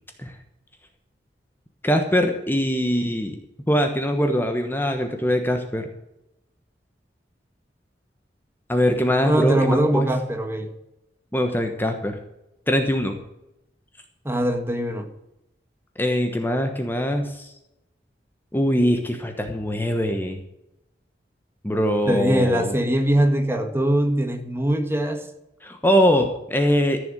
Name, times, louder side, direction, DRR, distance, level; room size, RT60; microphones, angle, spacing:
voice 1, 1.8-3.4 3.7-5.9 8.7-10.1 11.3-12.2 12.7-13.2 16.0-17.5 18.5-20.4 21.6-22.8 25.6-27.0, equal, 10° left, 1.2 m, -22 dB
voice 2, 9.3-10.7 14.3-15.1 22.1-25.2, right 1 dB, 15° right, 1.7 m, -22 dB
14.5 x 7.0 x 9.0 m
head